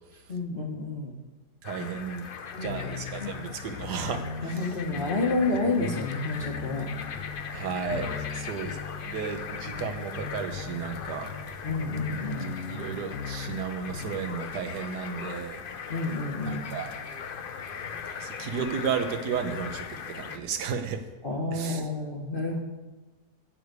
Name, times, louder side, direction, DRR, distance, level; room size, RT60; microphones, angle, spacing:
voice 1, 0.3-1.1 2.5-2.8 3.2-3.3 4.4-6.9 9.6-9.7 11.6-12.5 15.9-16.6 21.2-22.6, left 3 dB, 35° left, 0 dB, 1.4 m, -30 dB
sound 1, 1.6-20.4, left 6 dB, 70° left, 0.5 m, -39 dB
voice 2, 1.6-2.3 2.5-4.7 7.5-8.8 9.1-11.3 12.7-15.6 16.4-16.9 18.2-21.0 21.5-21.9, right 6 dB, 75° right, 7 dB, 1.5 m, -33 dB
sound 2, 2.6-14.4, left 5 dB, 90° left, 1.6 m, -39 dB
14.5 x 5.0 x 8.2 m, 1.2 s
omnidirectional pair, 1.8 m